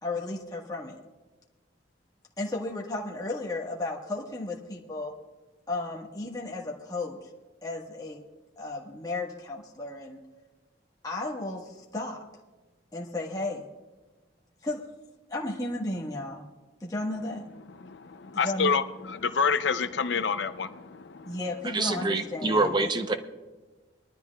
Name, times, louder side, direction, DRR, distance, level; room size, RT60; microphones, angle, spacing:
voice 1, 0.0-1.0 2.4-5.1 5.7-7.2 7.6-8.2 8.6-10.2 11.0-12.3 12.9-13.7 14.6-14.8 15.3-16.4 16.8-17.5 18.3-18.7 21.2-22.9, left 2 dB, 20° left, -3 dB, 1.4 m, -34 dB
voice 2, 17.8-21.4, left 5 dB, 70° left, 11 dB, 0.6 m, -28 dB
voice 3, 21.6-23.1, right 3 dB, 25° right, 7 dB, 0.7 m, -26 dB
22.0 x 12.5 x 2.3 m, 1.2 s
head